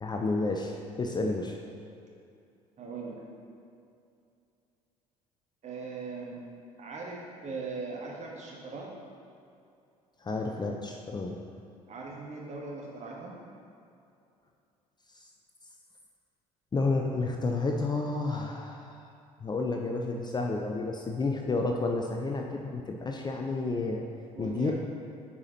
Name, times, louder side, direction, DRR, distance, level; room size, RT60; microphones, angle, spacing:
voice 1, 0.0-1.6 10.2-11.4 16.7-19.1 19.4-24.1 24.4-24.7, left 3 dB, 20° left, 1 dB, 0.5 m, -31 dB
voice 2, 2.8-3.2 5.6-6.4 6.8-8.9 11.9-13.3 24.3-24.7, right 4 dB, 35° right, -3 dB, 1.4 m, -39 dB
8.2 x 4.8 x 2.9 m, 2.5 s
figure-of-eight pair, 55°, 19 cm